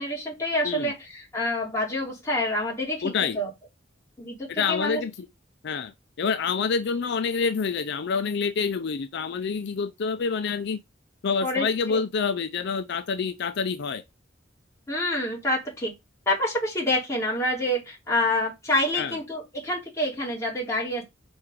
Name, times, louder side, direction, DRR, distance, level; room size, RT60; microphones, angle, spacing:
voice 1, 0.0-3.5 4.2-5.0 11.4-12.1 14.9-15.9 16.3-21.0, left 1 dB, 15° left, 2.8 m, -27 dB
voice 2, 3.0-3.4 4.5-5.1 5.6-5.9 6.2-10.8 11.2-14.0 19.0-19.2, left 5 dB, 60° left, 0.4 m, -27 dB
4.6 x 4.4 x 5.0 m
head